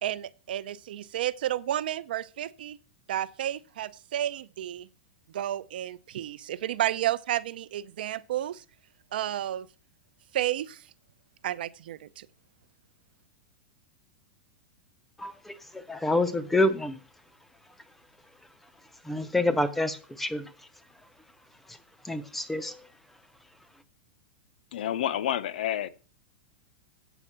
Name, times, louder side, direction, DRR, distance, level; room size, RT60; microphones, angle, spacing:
voice 1, 0.0-2.8 3.1-4.9 5.3-8.6 9.1-9.7 10.3-10.8 11.4-12.3, right 12 dB, 60° right, 0.6 m, -31 dB
voice 2, 15.2-17.0 19.0-20.5 21.7-21.8 22.0-22.9, left 2 dB, 5° left, 0.5 m, -28 dB
voice 3, 24.7-25.9, left 11 dB, 60° left, 0.7 m, -29 dB
8.1 x 5.5 x 7.3 m
supercardioid pair, 180°, 6 cm